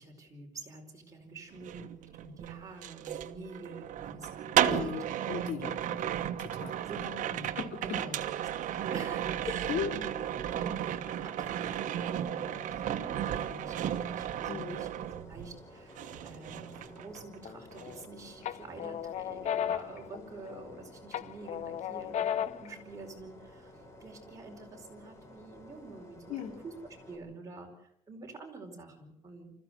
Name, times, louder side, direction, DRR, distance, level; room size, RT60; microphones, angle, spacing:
voice 1, 0.0-5.0 5.5-5.6 6.8-8.2 8.6-15.0 15.3-26.7 27.1-29.5, right 3 dB, 25° right, 1 dB, 4.7 m, -48 dB
sound 1, 1.5-15.7 16.0-17.4 17.7-18.1, right 10 dB, 65° right, 1.2 m, -34 dB
voice 2, 4.6-6.1 6.4-6.7 9.5-9.9 14.5-14.8 26.3-26.6, left 7 dB, 75° left, 3 dB, 2.9 m, -37 dB
sound 2, 9.1-27.2, left 1 dB, 20° left, 6.2 m, -54 dB
sound 3, 17.4-18.0 18.4-20.7 21.1-22.7, left 10 dB, 60° left, 0.8 m, -35 dB
26.0 x 14.5 x 7.9 m, 0.79 s
cardioid pair, 160°, 14 cm